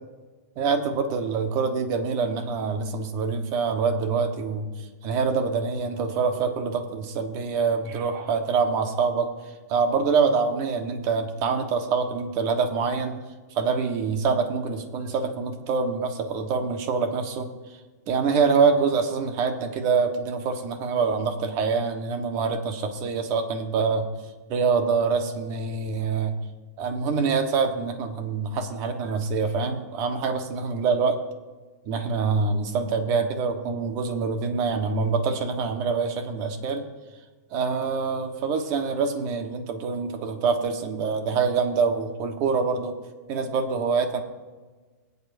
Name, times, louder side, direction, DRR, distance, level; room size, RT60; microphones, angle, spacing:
voice 1, 0.6-9.3 9.7-13.2 13.5-17.5 18.1-24.1 24.5-26.4 26.8-31.2 31.9-36.9 37.5-42.9 43.3-44.2, right 5 dB, 40° right, 6 dB, 1.4 m, -25 dB
22.5 x 8.2 x 2.7 m, 1.3 s
hypercardioid pair, 135°, 9 cm